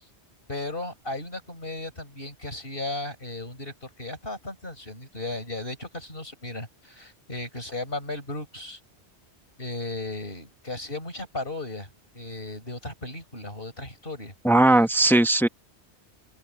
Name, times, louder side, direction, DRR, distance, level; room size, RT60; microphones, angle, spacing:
voice 1, 0.5-8.8 9.6-11.9 12.1-14.3, left 2 dB, 55° left, 6.3 m, -35 dB
voice 2, 14.4-15.5, right 2 dB, ahead, 0.8 m, -18 dB
open air
omnidirectional pair, 1.1 m